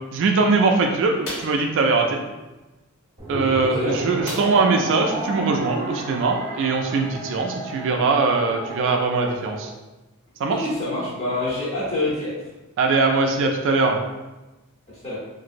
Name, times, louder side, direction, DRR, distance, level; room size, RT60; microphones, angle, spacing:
voice 1, 0.1-2.2 3.3-9.7 10.4-10.7 12.8-14.0, right 3 dB, 60° right, 2 dB, 0.3 m, -21 dB
sound 1, 1.2-1.6 4.2-4.8 5.2-5.3 5.7-5.9, left 1 dB, 70° left, 0.9 m, -34 dB
sound 2, 3.2-9.7, right 2 dB, 25° right, 0.7 m, -32 dB
voice 2, 3.6-4.0 10.5-12.3 15.0-15.2, left 2 dB, 30° left, -8 dB, 0.8 m, -26 dB
2.9 x 2.5 x 2.5 m, 1.1 s
head